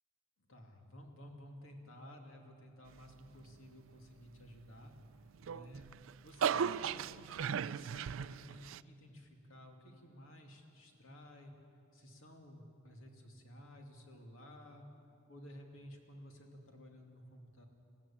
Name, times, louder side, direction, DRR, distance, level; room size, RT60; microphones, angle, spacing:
voice 1, 0.5-4.9 5.5-5.9 6.2-7.1 7.6-11.5 11.9-14.8 15.3-17.7, equal, 80° left, 2 dB, 2.7 m, -54 dB
sound 1, 5.3-8.8, right 7 dB, 70° right, 0.4 m, -36 dB
21.0 x 14.5 x 8.7 m, 2.6 s
head